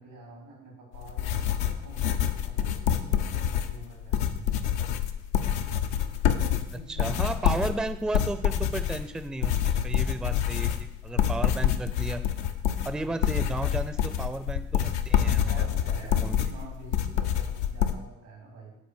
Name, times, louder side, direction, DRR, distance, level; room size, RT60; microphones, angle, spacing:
voice 1, 0.0-4.9 5.9-7.1 7.4-7.7 12.9-13.2 15.4-18.8, right 3 dB, 90° right, -1 dB, 2.4 m, -47 dB
sound 1, 0.9-17.9, left 9 dB, 80° left, 0.5 m, -27 dB
voice 2, 6.9-12.2 12.8-15.7 16.2-16.5, right 2 dB, ahead, 11 dB, 0.4 m, -34 dB
5.7 x 4.2 x 6.2 m, 0.85 s
hypercardioid pair, 45°, 34 cm